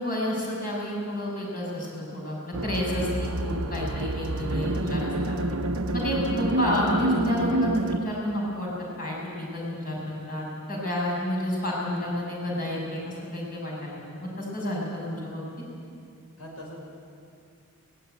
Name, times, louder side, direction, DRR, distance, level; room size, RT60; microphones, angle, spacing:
voice 1, 0.0-5.4 5.9-8.7 9.0-9.2 9.5-15.4, left 1 dB, 40° left, -4 dB, 7.1 m, -30 dB
sound 1, 2.5-8.0, right 2 dB, 70° right, 0.9 m, -28 dB
voice 2, 5.7-6.3 16.4-16.8, left 1 dB, 75° left, 0 dB, 6.0 m, -43 dB
22.0 x 18.0 x 9.3 m, 2.4 s
head